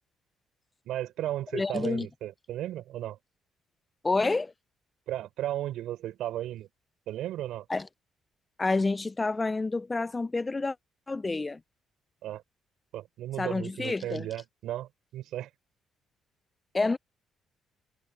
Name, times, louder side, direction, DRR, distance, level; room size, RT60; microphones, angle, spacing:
voice 1, 0.8-3.2 5.1-6.7 7.1-7.7 12.2-12.4 12.9-15.5, right 13 dB, 80° right, 4.8 m, -35 dB
voice 2, 1.5-2.1 4.0-4.5 7.7-7.9 8.6-10.8 11.1-11.6 13.4-14.3 16.7-17.0, left 3 dB, 25° left, 0.6 m, -28 dB
supercardioid pair, 75°, 0 cm